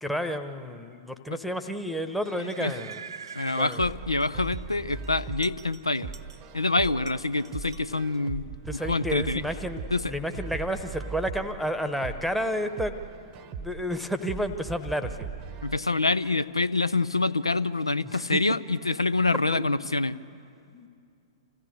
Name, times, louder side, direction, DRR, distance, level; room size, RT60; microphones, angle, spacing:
voice 1, 0.0-3.0 3.5-3.8 8.7-13.0 13.6-15.3 18.0-18.4 19.5-19.8 20.7-20.9, equal, ahead, 9 dB, 1.0 m, -31 dB
sound 1, 2.2-4.6 5.0-6.6 6.8-8.2, right 6 dB, 65° right, 0.7 m, -45 dB
voice 2, 3.3-6.1 6.5-8.5 8.9-9.4 9.9-10.1 15.6-20.2, left 3 dB, 80° left, 16 dB, 0.5 m, -26 dB
sound 2, 3.8-15.8, right 5 dB, 30° right, 0.8 m, -39 dB
26.0 x 16.0 x 8.0 m, 2.4 s
figure-of-eight pair, 105°, 3 cm